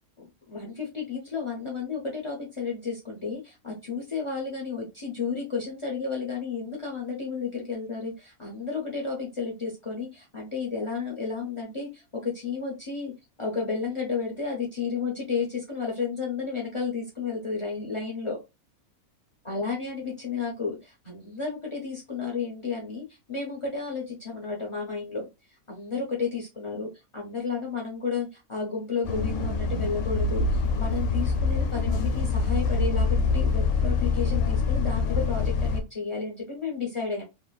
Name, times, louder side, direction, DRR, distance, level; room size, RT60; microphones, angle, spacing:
voice 1, 0.2-13.1 13.4-18.4 19.4-25.3 25.7-37.2, left 5 dB, 45° left, -2 dB, 0.4 m, -32 dB
Bus, 29.0-35.8, left 4 dB, 80° left, 1.1 m, -25 dB
3.0 x 2.2 x 2.3 m, 0.25 s
omnidirectional pair, 1.5 m